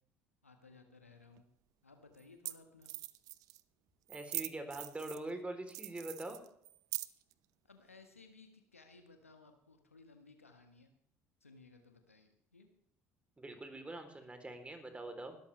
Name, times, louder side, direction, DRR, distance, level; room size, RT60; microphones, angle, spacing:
voice 1, 0.4-1.4 1.8-2.9 7.7-10.9 11.4-12.7, left 3 dB, 90° left, 6 dB, 1.5 m, -60 dB
sound 1, 1.4-1.5 2.2-2.3 2.5-2.6 2.8-3.6 4.1-5.3 5.7-7.3, right 17 dB, 60° right, 0.7 m, -42 dB
voice 2, 4.1-6.4 13.4-15.4, right 2 dB, 15° right, 6 dB, 3.5 m, -44 dB
20.0 x 13.0 x 3.4 m, 0.71 s
figure-of-eight pair, 55°, 7 cm